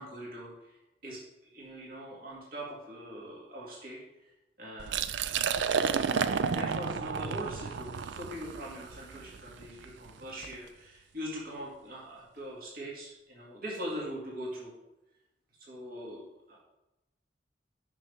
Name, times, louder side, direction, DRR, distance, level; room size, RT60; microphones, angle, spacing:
voice 1, 0.0-4.3 4.6-5.0 6.4-14.7 15.6-16.6, equal, 55° right, -5 dB, 2.2 m, -42 dB
Liquid, 4.8-10.6, right 6 dB, 80° right, 0.4 m, -32 dB
6.1 x 5.8 x 5.6 m, 0.94 s
head